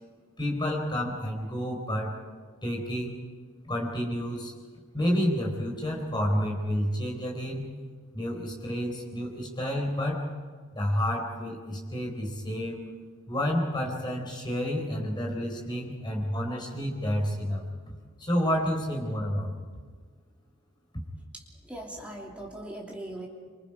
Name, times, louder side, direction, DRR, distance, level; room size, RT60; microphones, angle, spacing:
voice 1, 0.4-2.2 2.6-3.2 3.6-4.5 4.9-7.7 8.1-10.3 10.7-12.8 13.3-17.7 18.2-19.7, equal, 20° left, 0 dB, 4.4 m, -30 dB
voice 2, 21.6-23.3, right 1 dB, 5° right, -2 dB, 3.1 m, -39 dB
27.0 x 25.0 x 5.0 m, 1.5 s
head